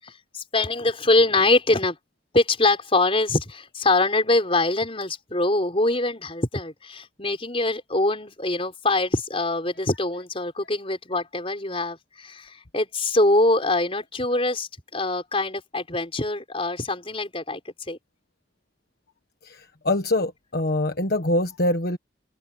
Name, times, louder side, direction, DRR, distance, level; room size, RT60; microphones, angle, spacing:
voice 1, 0.0-2.0 2.3-18.0, left 2 dB, 30° left, 5.2 m, -24 dB
voice 2, 19.4-22.0, left 1 dB, 55° left, 1.4 m, -24 dB
open air
head